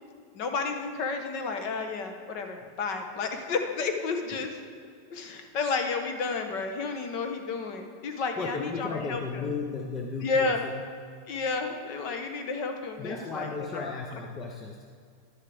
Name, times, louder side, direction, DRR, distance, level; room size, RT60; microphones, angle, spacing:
voice 1, 0.3-4.6 5.1-9.4 10.2-10.7 11.3-13.9, left 4 dB, 45° left, 5 dB, 0.9 m, -31 dB
voice 2, 8.4-10.8 13.0-14.8, left 4 dB, 20° left, 2 dB, 0.5 m, -35 dB
11.0 x 7.4 x 3.4 m, 2.2 s
supercardioid pair, 160°, 0 cm